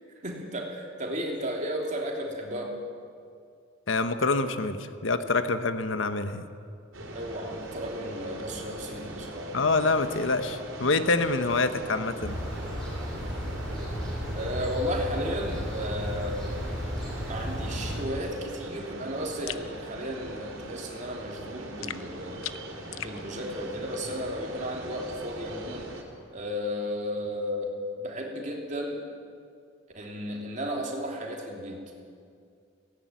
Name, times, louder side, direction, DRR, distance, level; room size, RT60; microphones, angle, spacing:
voice 1, 0.2-2.8 7.1-9.5 14.3-16.4 17.2-22.4 23.0-26.0 26.3-27.7 28.0-29.0 29.9-31.8, equal, 35° right, 0 dB, 3.0 m, -34 dB
voice 2, 3.9-6.4 9.5-12.4, left 3 dB, 70° left, 10 dB, 1.1 m, -26 dB
sound 1, 6.9-26.0, right 1 dB, 80° right, 3.6 m, -41 dB
sound 2, 12.2-18.0, equal, 5° left, 6.1 m, -34 dB
sound 3, 19.5-19.7 21.8-23.2, left 11 dB, 85° left, 0.7 m, -38 dB
17.0 x 16.5 x 9.6 m, 2.3 s
head